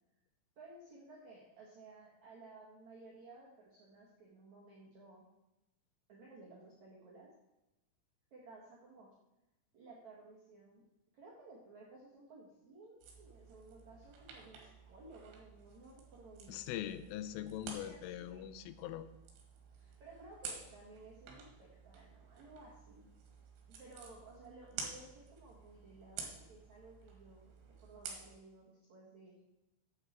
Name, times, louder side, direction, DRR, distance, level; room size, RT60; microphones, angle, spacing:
voice 1, 0.6-5.3 6.1-7.3 8.3-9.1 9.7-10.8 11.1-16.6 17.8-18.5 19.8-23.1 23.8-27.5 27.8-29.4, right 2 dB, 50° right, -4 dB, 2.3 m, -56 dB
sound 1, 13.0-28.4, right 5 dB, 70° right, 4.2 m, -51 dB
voice 2, 16.5-19.1, left 12 dB, 85° left, 12 dB, 3.2 m, -42 dB
11.5 x 9.0 x 4.5 m, 0.94 s
omnidirectional pair, 5.7 m